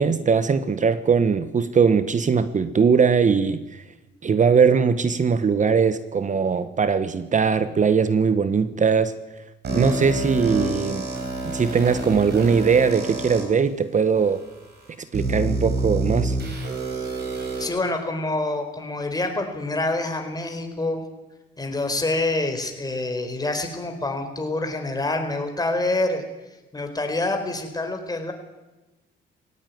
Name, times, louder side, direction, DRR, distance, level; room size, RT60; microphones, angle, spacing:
voice 1, 0.0-3.8 4.2-9.1 9.7-11.1 11.4-14.4 15.1-16.4, right 6 dB, 40° right, 13 dB, 1.1 m, -20 dB
sound 1, 9.6-13.4 14.1-14.2 15.1-17.6, right 2 dB, 55° right, 7.2 m, -27 dB
voice 2, 17.6-21.0 21.6-26.2 26.7-28.3, left 2 dB, 20° left, 5 dB, 4.3 m, -26 dB
17.5 x 17.0 x 9.4 m, 1.1 s
cardioid pair, 90°, 20 cm